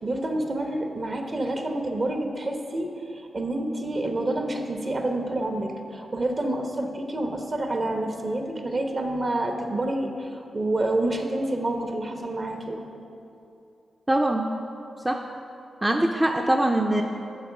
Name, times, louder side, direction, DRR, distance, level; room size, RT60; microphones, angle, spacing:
voice 1, 0.0-12.9, right 1 dB, 50° right, 4 dB, 1.0 m, -28 dB
voice 2, 14.1-14.5 15.0-15.2 15.8-17.0, right 1 dB, 20° right, 3 dB, 0.5 m, -22 dB
8.0 x 4.5 x 6.0 m, 2.7 s
supercardioid pair, 40°, 0 cm